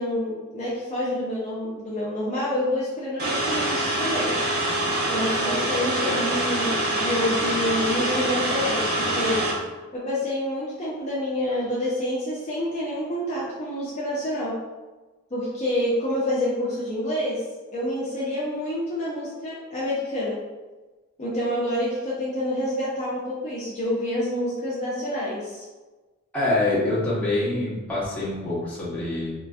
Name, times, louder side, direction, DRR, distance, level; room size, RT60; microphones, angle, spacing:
voice 1, 0.0-4.3 5.1-9.4 9.9-14.5 15.3-17.4 17.7-20.4 21.2-25.7, left 1 dB, 35° left, -7 dB, 0.6 m, -27 dB
sound 1, 3.2-9.5, right 1 dB, 50° right, 0.8 m, -25 dB
voice 2, 26.3-29.3, left 2 dB, 5° left, -9 dB, 0.9 m, -25 dB
3.7 x 2.5 x 2.3 m, 1.2 s
head